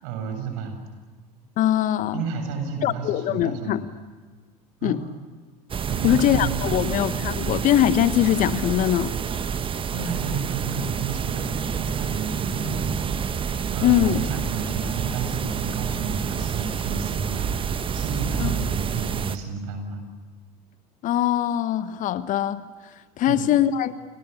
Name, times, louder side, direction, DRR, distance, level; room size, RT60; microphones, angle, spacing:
voice 1, 0.0-0.8 2.1-3.8 4.8-5.0 5.9-7.0 7.5-7.6 9.9-20.0 23.3-23.5, right 5 dB, 55° right, 5 dB, 7.3 m, -32 dB
voice 2, 1.6-2.2 2.8-3.8 4.8-5.0 6.0-9.1 13.8-14.2 18.4-18.5 21.0-22.6 23.2-23.9, left 12 dB, 40° left, 14 dB, 1.2 m, -22 dB
sound 1, 5.7-19.4, right 7 dB, 25° right, 1.5 m, -28 dB
30.0 x 29.0 x 6.9 m, 1.4 s
figure-of-eight pair, 70°, 20 cm